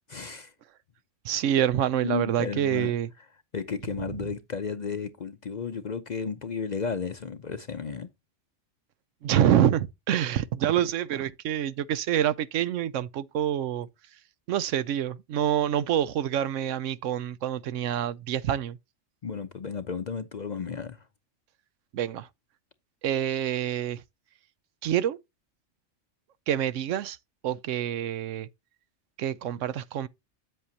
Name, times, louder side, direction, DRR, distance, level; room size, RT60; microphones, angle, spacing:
voice 1, 0.1-0.5 2.0-2.9 3.5-8.1 19.2-21.1, left 5 dB, 50° left, 0.6 m, -33 dB
voice 2, 1.2-3.1 9.2-13.9 14.5-18.8 21.9-22.3 23.0-24.0 24.8-25.2 26.5-27.2 27.4-28.5 29.2-30.1, right 10 dB, 85° right, 1.0 m, -26 dB
8.5 x 7.8 x 2.8 m
omnidirectional pair, 1.3 m